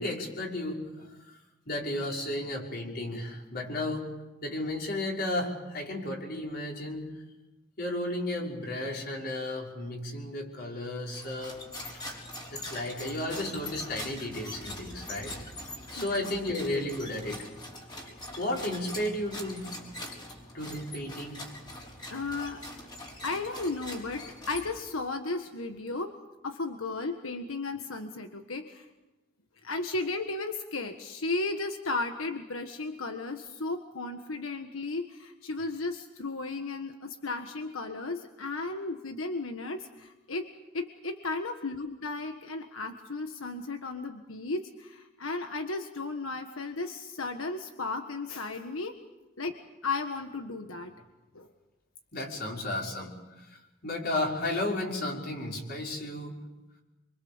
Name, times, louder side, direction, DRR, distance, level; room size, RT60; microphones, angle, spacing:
voice 1, 0.0-1.4 1.7-4.1 4.4-7.1 7.8-11.6 12.5-15.4 15.9-17.5 18.4-19.7 20.5-21.4 52.1-56.4, left 1 dB, 50° left, -1 dB, 5.7 m, -33 dB
sound 1, 11.1-25.0, left 1 dB, 20° left, 4.9 m, -43 dB
voice 2, 16.0-16.3 22.1-22.6 23.2-26.1 26.4-28.8 29.6-48.9 49.4-49.5 49.8-50.9 51.3-51.5, left 3 dB, 90° left, 5 dB, 1.6 m, -35 dB
27.5 x 25.0 x 7.3 m, 1.0 s
head